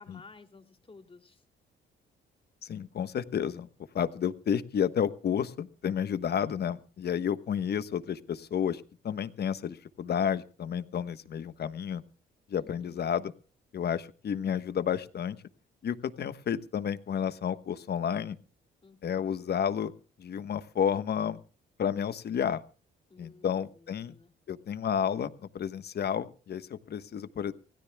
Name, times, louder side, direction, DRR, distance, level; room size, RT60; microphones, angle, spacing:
voice 1, 0.0-1.4 12.5-13.1 18.8-19.3 23.1-24.3, left 4 dB, 25° left, 5 dB, 2.7 m, -54 dB
voice 2, 2.6-3.7 3.9-12.0 12.5-13.3 13.7-15.4 15.8-18.4 19.0-19.9 20.2-21.4 21.8-22.6 23.2-24.1 24.5-27.5, left 8 dB, 55° left, 12 dB, 1.2 m, -31 dB
26.0 x 17.0 x 2.3 m, 0.38 s
cardioid pair, 90°, 20 cm